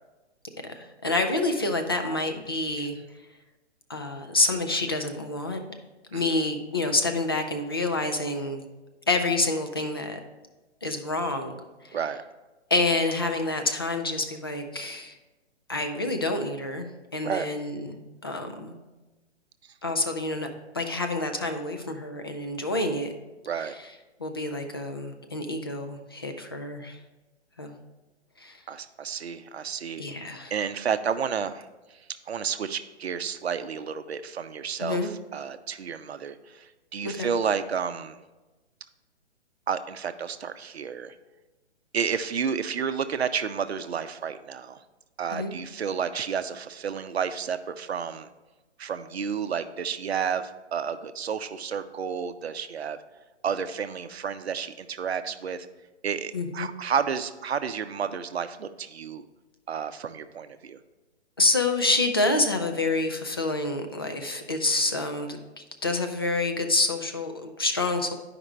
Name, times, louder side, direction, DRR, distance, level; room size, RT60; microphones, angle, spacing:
voice 1, 0.7-2.9 3.9-5.6 6.1-8.6 9.1-10.2 10.8-11.5 11.8-12.0 12.7-15.1 15.7-18.7 19.8-20.5 20.7-23.1 23.6-23.9 24.2-27.0 27.6-27.7 28.4-28.6 30.0-30.5 34.8-35.1 37.0-37.3 45.3-45.5 56.3-56.7 61.4-68.1, left 2 dB, 20° left, 5 dB, 0.3 m, -28 dB
voice 2, 11.9-12.2 17.2-17.5 23.5-23.7 28.7-30.0 30.5-32.0 32.3-38.2 39.7-41.1 41.9-44.8 45.2-48.3 48.8-53.0 53.4-55.7 56.0-59.2 59.7-60.8, right 7 dB, 60° right, 11 dB, 0.6 m, -31 dB
11.5 x 5.0 x 3.1 m, 1.2 s
figure-of-eight pair, 130°, 35 cm